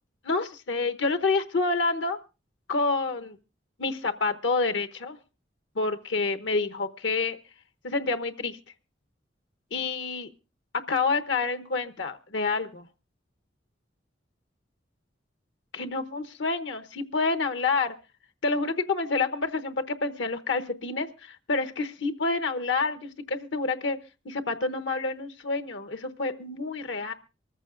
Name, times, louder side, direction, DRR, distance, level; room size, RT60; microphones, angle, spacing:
voice 1, 0.2-2.2 2.7-3.4 3.8-5.2 5.8-7.4 7.8-8.6 9.7-10.3 10.7-12.9 15.7-17.9 18.4-24.0 24.2-27.1, left 3 dB, 80° left, 10 dB, 0.9 m, -28 dB
24.5 x 14.5 x 2.4 m, 0.31 s
head